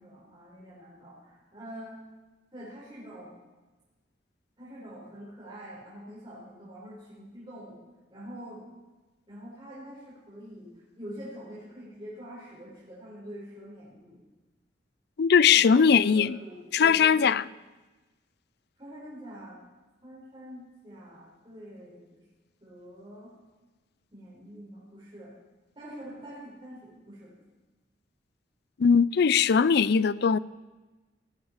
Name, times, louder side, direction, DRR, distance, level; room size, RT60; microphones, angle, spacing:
voice 1, 0.0-2.0 2.5-3.3 4.6-7.8 8.1-8.7 9.3-14.2 15.5-17.3 18.8-19.6 20.0-22.2 22.6-23.3 24.1-25.3 25.8-27.4, equal, 30° right, -8 dB, 5.6 m, -45 dB
voice 2, 15.2-16.4 16.7-17.4 28.8-30.4, left 6 dB, 60° left, 18 dB, 0.4 m, -20 dB
18.5 x 14.5 x 5.0 m, 1.2 s
head